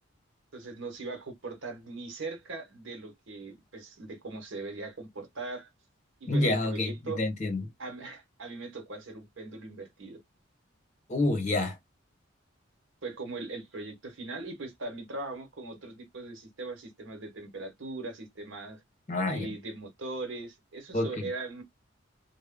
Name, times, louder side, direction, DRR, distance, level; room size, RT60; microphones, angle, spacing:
voice 1, 0.5-5.7 6.2-7.2 7.8-10.2 13.0-18.8 19.2-21.6, right 3 dB, 70° right, 1.0 m, -40 dB
voice 2, 6.3-7.6 11.1-11.8 19.1-19.5 20.9-21.3, left 2 dB, 40° left, 1.0 m, -28 dB
2.1 x 2.1 x 3.6 m
head